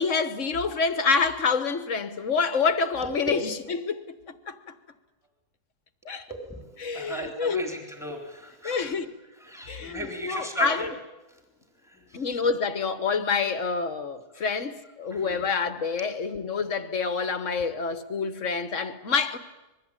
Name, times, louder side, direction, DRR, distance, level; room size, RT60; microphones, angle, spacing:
voice 1, 0.0-4.0 4.5-4.6 6.0-6.3 6.8-7.7 8.6-9.1 9.7-10.9 12.1-19.4, left 5 dB, 50° left, 1.6 m, -27 dB
voice 2, 6.9-8.9 9.4-10.9 11.3-11.4 11.8-12.2 14.4-14.5 15.1-15.4 16.0-16.1 17.6-17.7, right 1 dB, ahead, 3.8 m, -37 dB
25.5 x 21.5 x 9.0 m
omnidirectional pair, 1.7 m